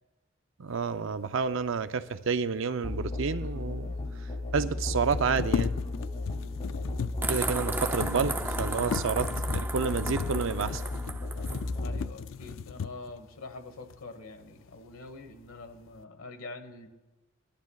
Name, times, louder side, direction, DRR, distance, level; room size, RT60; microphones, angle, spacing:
voice 1, 0.6-3.9 4.5-5.7 7.3-10.8, right 5 dB, 70° right, 11 dB, 0.5 m, -30 dB
Musical instrument, 2.8-12.1, left 2 dB, 35° left, 1.1 m, -34 dB
sound 1, 3.4-3.5 3.7-3.8 4.8-13.2 13.9-14.0 14.5-15.1 15.4-16.0, left 6 dB, 70° left, 0.4 m, -37 dB
sound 2, 7.2-11.6, right 3 dB, 10° right, 0.4 m, -35 dB
voice 2, 11.8-16.9, left 3 dB, 90° left, 7 dB, 1.3 m, -45 dB
20.5 x 11.5 x 2.3 m, 1.1 s
head